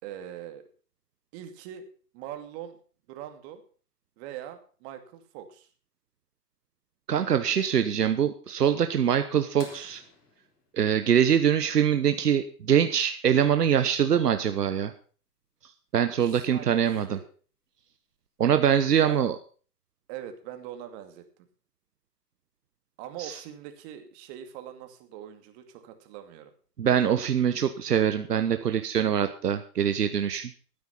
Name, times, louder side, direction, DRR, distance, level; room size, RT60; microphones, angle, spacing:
voice 1, 0.0-0.6 1.3-1.8 2.1-2.8 3.1-3.6 4.2-5.7 16.2-17.2 19.0-19.3 20.1-21.2 23.0-26.5, right 10 dB, 45° right, 7 dB, 2.4 m, -42 dB
voice 2, 7.1-10.0 10.7-14.9 15.9-17.2 18.4-19.3 23.2-23.3 26.8-30.5, right 8 dB, 80° right, 9 dB, 1.1 m, -24 dB
sound 1, 9.6-12.0 14.0-14.1 16.3-16.4 18.1-18.4 19.2-19.3, left 3 dB, 75° left, 3.5 m, -51 dB
12.5 x 9.6 x 5.8 m, 0.41 s
figure-of-eight pair, 105°, 47 cm